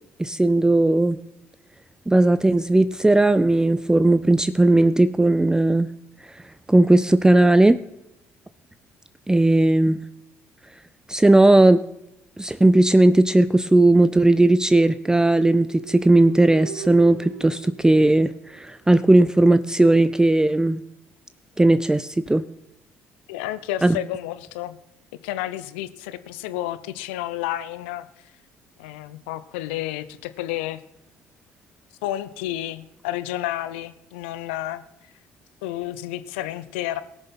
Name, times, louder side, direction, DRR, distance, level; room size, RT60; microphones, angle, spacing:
voice 1, 0.2-1.2 2.1-5.9 6.2-7.8 9.3-10.0 10.7-10.8 11.1-11.9 12.4-20.9 21.6-22.5 23.8-24.0, right 2 dB, 10° right, 14 dB, 0.4 m, -17 dB
sound 1, 15.0-18.8, right 9 dB, 80° right, 1.1 m, -40 dB
voice 2, 23.3-24.8 25.1-28.3 28.8-30.8 32.0-35.1 35.6-37.0, left 14 dB, 85° left, 14 dB, 0.6 m, -31 dB
18.5 x 6.7 x 5.5 m, 0.87 s
hypercardioid pair, 55°, 6 cm